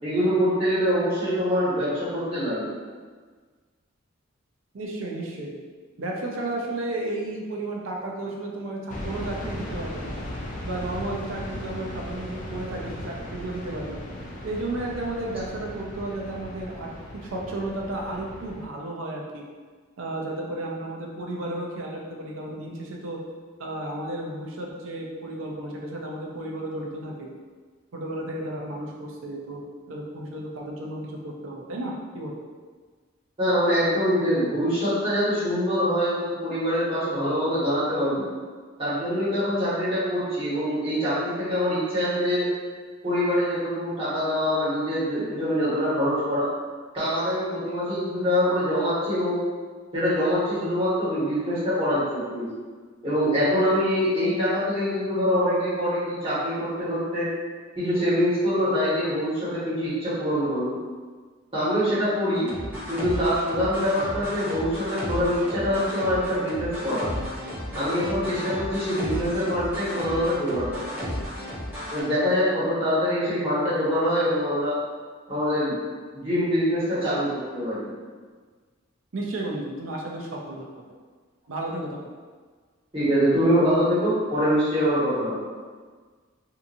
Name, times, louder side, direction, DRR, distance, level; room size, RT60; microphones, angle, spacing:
voice 1, 0.0-2.7 33.4-38.2 38.8-42.5 43.0-46.5 46.9-49.4 49.9-52.5 53.0-57.3 57.8-60.8 61.5-62.5 62.9-67.0 67.7-70.9 71.9-74.8 75.3-75.8 76.1-77.9 82.9-85.4, equal, 30° right, -12 dB, 1.4 m, -24 dB
voice 2, 4.7-5.6 6.0-10.2 10.6-14.0 14.4-19.4 20.0-23.2 23.6-27.3 27.9-32.4 79.1-80.9 81.5-82.2, right 1 dB, 75° right, -1 dB, 0.5 m, -33 dB
sound 1, 8.9-18.7, left 1 dB, 40° left, 0.4 m, -37 dB
sound 2, 62.3-72.0, equal, 10° right, 0.9 m, -34 dB
2.7 x 2.6 x 2.5 m, 1.5 s
head